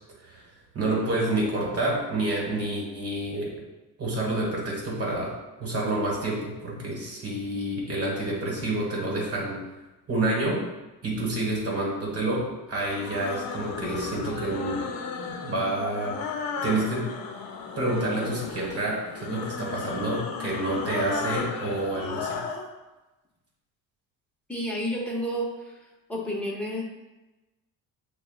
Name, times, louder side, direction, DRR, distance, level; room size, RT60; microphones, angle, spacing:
voice 1, 0.7-3.5 4.0-5.3 5.6-9.6 10.1-10.6 11.0-14.8 15.2-16.2 16.6-17.0 17.8-22.4, right 2 dB, 40° right, -2 dB, 1.5 m, -28 dB
sound 1, 12.7-22.7, left 5 dB, 70° left, 0.7 m, -35 dB
voice 2, 24.5-25.8 26.1-26.8, equal, 5° left, -4 dB, 0.9 m, -30 dB
6.5 x 2.3 x 2.4 m, 1.1 s
cardioid pair, 120°, 37 cm